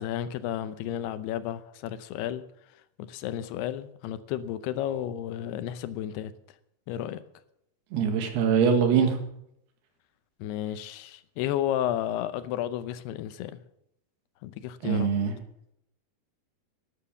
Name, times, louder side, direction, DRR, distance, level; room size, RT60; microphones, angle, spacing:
voice 1, 0.0-2.4 3.1-6.3 6.9-7.2 10.4-13.6 14.4-15.1, left 11 dB, 80° left, 2.8 m, -32 dB
voice 2, 7.9-9.2 14.8-15.3, right 6 dB, 75° right, 3.8 m, -23 dB
12.5 x 11.5 x 7.1 m
omnidirectional pair, 4.7 m